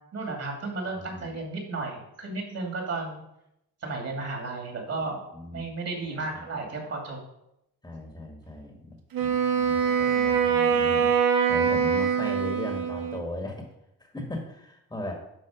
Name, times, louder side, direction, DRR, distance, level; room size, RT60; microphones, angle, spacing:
voice 1, 0.1-3.2 3.8-5.2 5.5-7.2, right 3 dB, 40° right, 1 dB, 2.6 m, -33 dB
voice 2, 1.0-1.4 5.3-5.7 6.0-6.5 7.8-11.1 11.5-13.6 14.0-15.1, left 1 dB, 10° left, 1 dB, 1.7 m, -38 dB
Wind instrument woodwind instrument, 9.1-13.3, right 7 dB, 65° right, 1.1 m, -24 dB
11.5 x 4.0 x 5.0 m, 0.82 s
cardioid pair, 110°, 38 cm